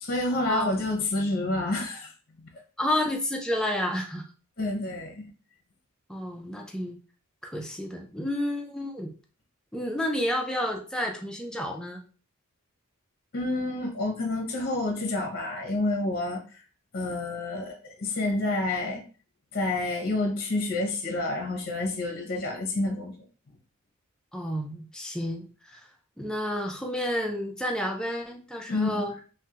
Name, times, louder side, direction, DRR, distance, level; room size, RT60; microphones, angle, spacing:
voice 1, 0.0-2.1 4.6-5.2 13.3-16.4 16.9-19.0 19.5-23.1 28.7-29.1, left 2 dB, 45° left, 1 dB, 0.6 m, -28 dB
voice 2, 2.8-4.2 6.1-6.9 7.4-9.1 9.7-12.0 24.3-25.8 26.2-29.1, left 1 dB, 5° left, 1 dB, 0.4 m, -30 dB
3.3 x 2.1 x 2.8 m, 0.37 s
head